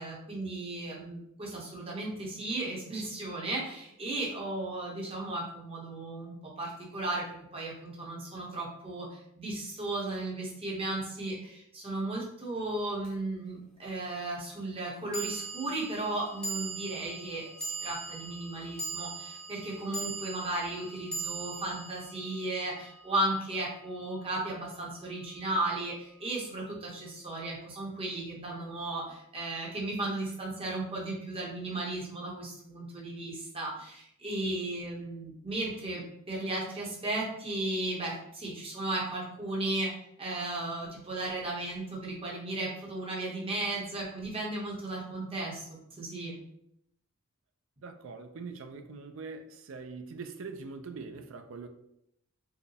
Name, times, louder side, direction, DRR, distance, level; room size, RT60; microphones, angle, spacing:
voice 1, 0.0-7.3 7.5-36.0 36.3-39.9 40.2-45.7 46.0-46.4, right 2 dB, 25° right, 1.0 m, -35 dB
sound 1, 13.0-13.1 15.1-23.6, right 3 dB, 5° left, 0.5 m, -40 dB
voice 2, 47.8-51.7, right 4 dB, 65° right, 0.4 m, -43 dB
4.6 x 2.2 x 3.3 m
head